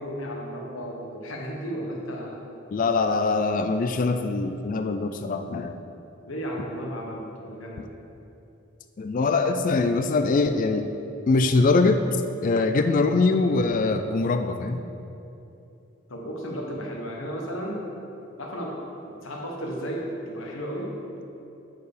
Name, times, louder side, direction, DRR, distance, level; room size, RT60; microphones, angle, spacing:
voice 1, 0.0-2.4 6.3-7.9 12.8-13.1 16.1-17.8 18.4-18.8 19.2-20.9, equal, 80° left, -1 dB, 1.3 m, -34 dB
voice 2, 2.7-5.8 9.0-10.9 11.3-12.0 12.4-14.8, left 3 dB, 40° left, 7 dB, 0.4 m, -23 dB
9.2 x 4.7 x 5.0 m, 2.8 s
head